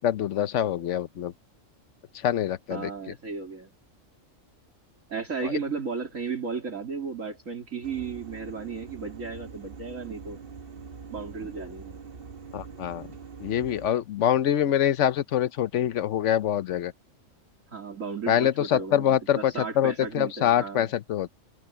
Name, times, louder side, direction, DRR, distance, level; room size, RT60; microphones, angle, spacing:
voice 1, 0.0-1.3 2.2-2.9 5.4-5.5 12.5-13.0 13.4-16.9 18.3-21.3, left 10 dB, 65° left, 1.0 m, -25 dB
voice 2, 2.7-3.7 5.1-10.4 11.1-12.0 17.7-20.9, right 5 dB, 75° right, 3.3 m, -34 dB
sound 1, 7.8-13.9, right 5 dB, 45° right, 1.2 m, -43 dB
omnidirectional pair, 1.4 m